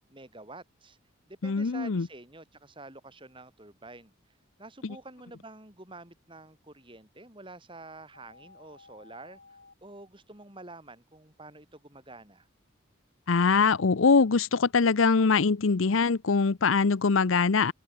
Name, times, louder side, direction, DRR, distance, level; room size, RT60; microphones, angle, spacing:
voice 1, 0.1-1.0 1.3-4.1 4.6-12.5, right 2 dB, 25° right, 5.1 m, -48 dB
voice 2, 1.4-2.1 4.8-4.9 13.3-17.7, left 4 dB, 75° left, 0.7 m, -23 dB
sound 1, 8.1-9.7, left 3 dB, 50° left, 4.2 m, -55 dB
head